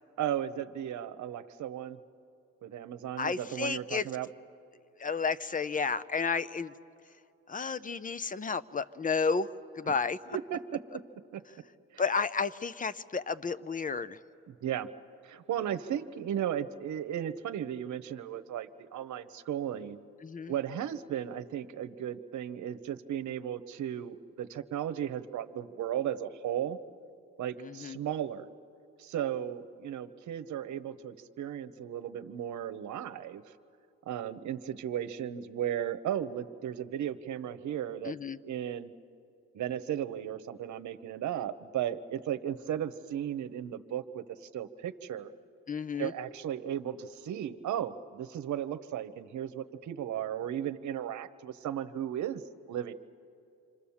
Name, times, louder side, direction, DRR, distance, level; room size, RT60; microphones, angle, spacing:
voice 1, 0.2-2.0 2.6-4.3 9.8-9.9 10.3-11.0 11.3-11.4 11.9-12.0 14.5-14.9 15.2-20.0 20.5-26.8 27.4-28.5 29.0-33.4 34.1-38.1 38.4-38.9 39.5-45.3 46.0-52.4 52.7-52.9, right 10 dB, 70° right, 12 dB, 1.0 m, -35 dB
voice 2, 3.2-4.0 5.0-6.7 7.5-9.5 9.8-10.4 12.0-14.2 20.2-20.5 27.6-28.0 38.1-38.4 45.7-46.1, left 5 dB, 25° left, 15 dB, 0.8 m, -32 dB
28.0 x 25.5 x 7.2 m, 2.6 s
cardioid pair, 90°, 30 cm